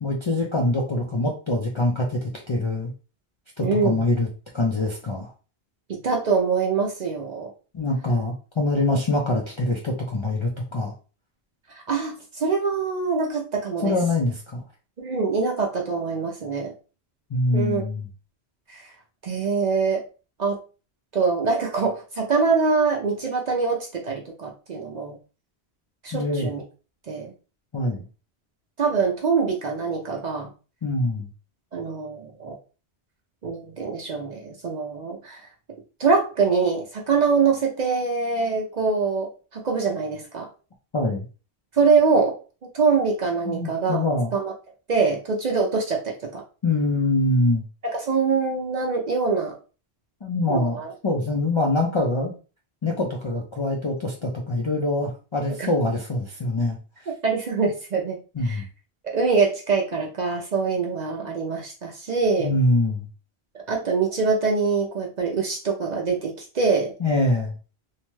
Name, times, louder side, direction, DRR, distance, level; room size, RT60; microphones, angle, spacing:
voice 1, 0.0-2.9 3.6-4.3 4.5-5.3 7.7-10.9 13.8-14.6 17.3-18.1 26.1-26.5 27.7-28.0 30.8-31.3 40.9-41.3 43.4-44.3 46.6-47.6 50.2-50.8 51.0-52.3 52.8-57.1 58.3-58.7 62.4-63.1 67.0-67.5, left 2 dB, 45° left, -2 dB, 0.4 m, -24 dB
voice 2, 3.6-4.1 5.9-7.5 11.7-13.9 15.0-16.7 17.5-17.8 18.7-18.9 19.2-20.0 20.4-20.6 21.1-25.2 26.0-26.6 27.1-27.3 28.8-30.5 31.7-32.6 33.4-35.4 36.0-40.5 41.7-42.4 42.7-44.1 44.3-44.5 44.9-46.4 47.8-49.6 50.5-50.9 55.6-55.7 57.2-58.2 58.4-58.6 59.0-62.5 63.7-66.9, right 4 dB, 50° right, 0 dB, 0.6 m, -24 dB
2.7 x 2.2 x 3.0 m, 0.34 s
omnidirectional pair, 1.1 m